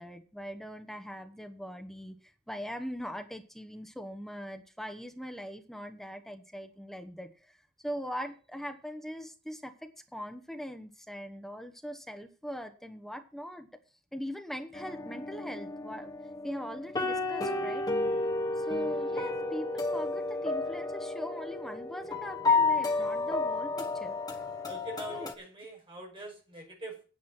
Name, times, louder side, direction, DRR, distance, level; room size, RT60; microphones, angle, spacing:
voice 1, 0.0-7.5 7.8-13.7 14.1-16.1 16.4-17.9 18.6-24.2 25.1-25.3, equal, ahead, 6 dB, 1.1 m, -41 dB
sound 1, 14.7-25.3, left 3 dB, 15° left, 1.2 m, -31 dB
voice 2, 24.6-27.1, right 1 dB, 25° right, 0 dB, 5.4 m, -44 dB
9.8 x 8.3 x 6.0 m, 0.36 s
head